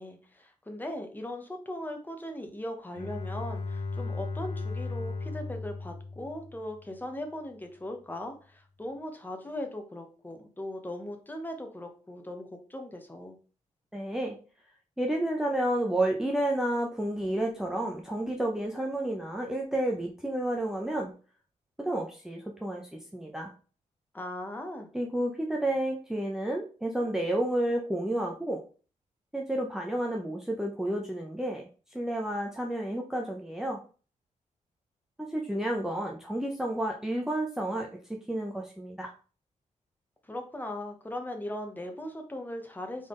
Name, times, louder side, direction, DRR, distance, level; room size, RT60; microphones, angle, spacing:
voice 1, 0.0-13.4 24.1-24.9 40.2-43.1, left 1 dB, 15° left, 4 dB, 1.0 m, -39 dB
Bowed string instrument, 2.9-6.9, left 3 dB, 50° left, 0.9 m, -36 dB
voice 2, 13.9-14.4 15.0-21.1 21.8-23.5 24.9-28.6 29.3-31.6 31.9-33.8 35.2-39.1, right 1 dB, 5° right, 0 dB, 0.6 m, -31 dB
4.0 x 3.5 x 3.8 m, 0.37 s
cardioid pair, 105°, 13 cm